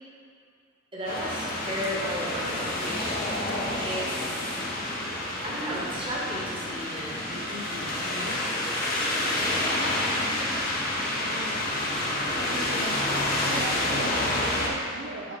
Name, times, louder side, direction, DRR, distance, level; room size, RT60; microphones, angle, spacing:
voice 1, 0.9-3.2 3.8-4.6 5.4-8.4, equal, 25° right, -4 dB, 1.2 m, -35 dB
sound 1, 1.1-14.7, left 1 dB, 45° left, 1.1 m, -28 dB
voice 2, 11.1-11.8 12.3-15.4, right 2 dB, 75° right, 0 dB, 0.6 m, -39 dB
7.1 x 4.2 x 5.2 m, 2.4 s
head